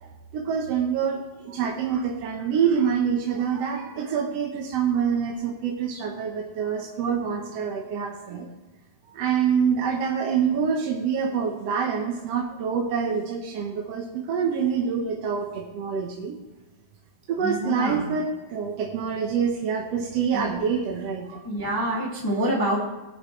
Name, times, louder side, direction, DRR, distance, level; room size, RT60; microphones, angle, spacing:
voice 1, 0.0-8.5 9.1-16.4 17.3-21.4, right 7 dB, 60° right, 0 dB, 2.0 m, -26 dB
voice 2, 17.4-18.1 20.3-20.7 21.4-22.8, right 1 dB, 10° left, -4 dB, 1.8 m, -27 dB
20.0 x 8.9 x 3.3 m, 1.1 s
omnidirectional pair, 3.5 m